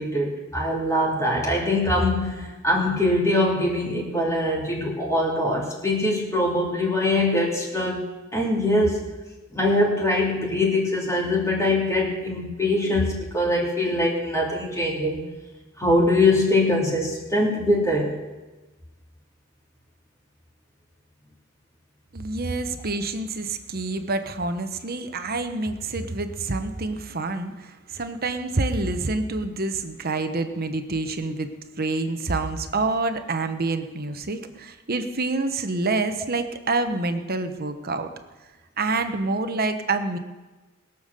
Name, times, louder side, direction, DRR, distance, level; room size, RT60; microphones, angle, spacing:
voice 1, 0.0-8.1 8.3-9.0 9.5-15.3 15.8-18.2, left 1 dB, 15° left, -4 dB, 2.9 m, -23 dB
voice 2, 22.1-38.1 38.8-40.2, right 3 dB, 45° right, 8 dB, 1.1 m, -27 dB
21.0 x 7.1 x 6.7 m, 1.2 s
head